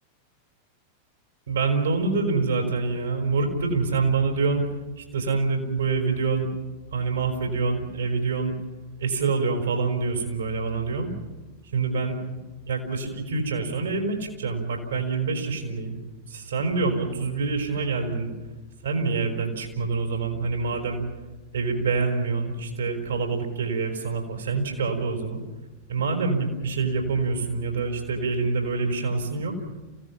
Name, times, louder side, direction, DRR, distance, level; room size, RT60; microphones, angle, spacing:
voice 1, 1.5-4.7 5.0-6.5 6.9-8.6 9.0-11.1 11.7-12.4 12.7-16.0 16.3-18.3 18.8-21.0 21.5-25.4 25.9-29.6, right 4 dB, 70° right, 3 dB, 5.1 m, -26 dB
28.5 x 17.0 x 7.4 m, 1.2 s
figure-of-eight pair, 90°, 0 cm